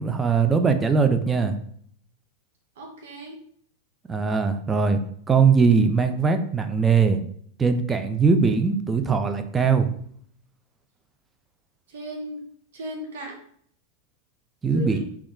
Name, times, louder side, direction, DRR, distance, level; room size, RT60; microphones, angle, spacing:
voice 1, 0.0-1.6 4.1-5.0 5.3-7.2 7.6-9.9 14.6-15.0, right 5 dB, 15° right, 7 dB, 0.3 m, -20 dB
voice 2, 2.8-3.4 11.9-12.4 12.7-13.4 14.6-15.0, right 1 dB, 60° right, 0 dB, 0.6 m, -36 dB
3.0 x 2.3 x 3.5 m, 0.62 s
figure-of-eight pair, 90°, 0 cm